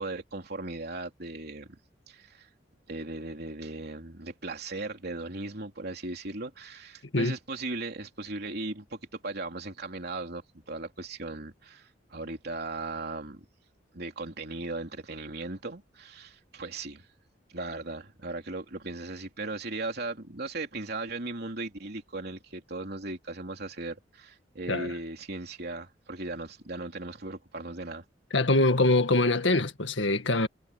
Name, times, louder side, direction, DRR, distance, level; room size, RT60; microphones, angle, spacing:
voice 1, 0.0-1.8 2.1-2.5 2.9-10.4 10.7-13.4 13.9-17.1 17.5-28.0, right 2 dB, 60° right, 3.4 m, -37 dB
voice 2, 28.3-30.5, left 2 dB, 90° left, 2.0 m, -24 dB
head